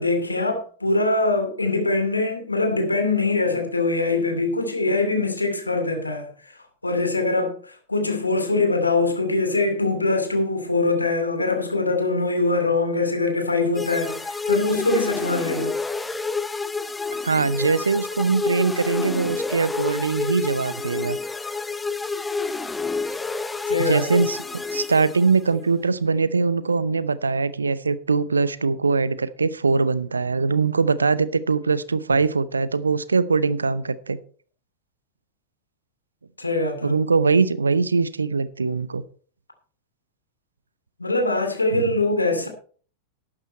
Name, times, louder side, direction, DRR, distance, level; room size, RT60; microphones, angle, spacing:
voice 1, 0.0-6.3 6.8-15.7 23.7-24.2 36.4-37.0 41.0-42.5, left 3 dB, 80° left, 2.5 m, -23 dB
sound 1, 13.7-25.6, left 4 dB, 10° left, 0.7 m, -28 dB
voice 2, 17.2-21.2 23.8-34.2 36.8-39.0 41.7-41.8, right 4 dB, 75° right, 0.7 m, -22 dB
12.0 x 9.0 x 4.3 m
figure-of-eight pair, 90°, 0 cm